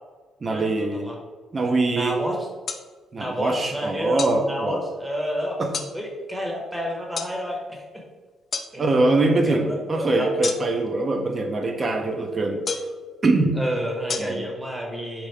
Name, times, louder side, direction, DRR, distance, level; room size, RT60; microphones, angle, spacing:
voice 1, 0.4-1.1 1.5-2.2 3.1-4.8 5.6-5.7 8.8-12.6 13.2-13.6 14.2-14.5, right 2 dB, 35° right, 4 dB, 0.6 m, -23 dB
voice 2, 1.6-2.4 3.2-5.6 5.9-7.8 8.7-8.9 9.4-10.3 13.6-15.3, equal, 5° right, 0 dB, 0.8 m, -30 dB
sound 1, 2.7-2.8 4.2-4.4 5.7-5.9 7.2-7.3 8.5-8.7 10.4-10.9 12.7-13.0 14.1-14.2, left 5 dB, 45° left, 0.3 m, -29 dB
3.6 x 3.0 x 3.3 m, 1.4 s
cardioid pair, 90°, 0 cm